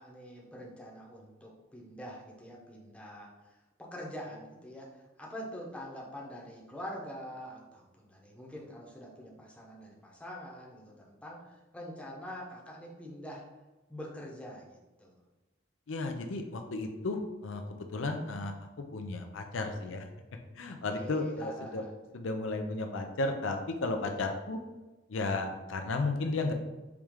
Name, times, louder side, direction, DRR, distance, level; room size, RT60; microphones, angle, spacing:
voice 1, 0.0-3.5 3.8-13.4 13.9-15.2 20.7-21.9, equal, 5° left, -3 dB, 0.8 m, -45 dB
voice 2, 15.9-17.6 17.9-18.5 18.9-20.1 20.6-21.8 22.1-24.6 25.1-26.5, left 3 dB, 80° left, 4 dB, 0.5 m, -33 dB
4.7 x 3.1 x 3.6 m, 1.1 s
head